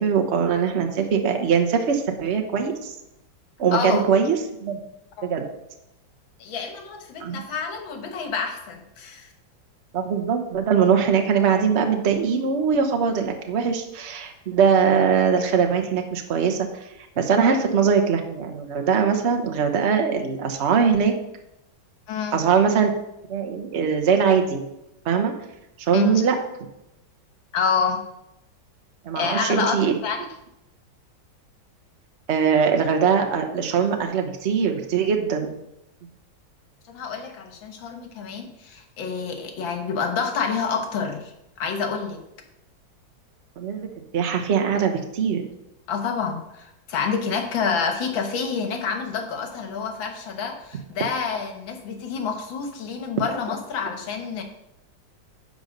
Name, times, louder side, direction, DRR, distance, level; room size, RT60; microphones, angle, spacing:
voice 1, 0.0-2.9 3.6-4.8 5.2-5.4 7.2-7.4 9.9-21.1 22.3-22.9 23.3-24.6 25.0-25.3 25.8-26.4 29.0-30.0 32.3-35.6 43.6-45.5, right 6 dB, 45° right, 4 dB, 1.1 m, -21 dB
voice 2, 3.7-4.0 5.2-5.3 6.4-9.3 22.1-22.3 25.9-26.0 27.5-28.0 29.2-30.3 36.9-41.3 41.6-42.2 45.9-54.4, left 5 dB, 80° left, 5 dB, 2.0 m, -28 dB
10.5 x 4.0 x 6.5 m, 0.86 s
omnidirectional pair, 2.1 m